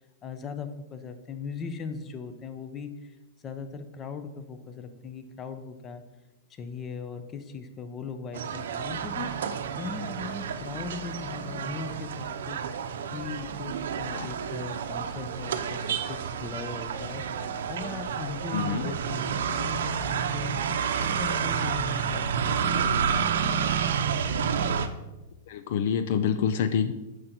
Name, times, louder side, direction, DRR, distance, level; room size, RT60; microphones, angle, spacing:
voice 1, 0.2-3.2 3.4-6.0 6.5-9.4 9.8-12.6 13.1-17.2 17.5-20.5 21.0-24.0, left 5 dB, 25° left, 9 dB, 0.8 m, -39 dB
sound 1, 8.3-24.9, right 7 dB, 80° right, 0.7 m, -30 dB
voice 2, 18.5-18.9 25.5-26.9, left 7 dB, 60° left, 11 dB, 0.5 m, -27 dB
8.7 x 6.6 x 4.4 m, 1.0 s
hypercardioid pair, 140°, 0 cm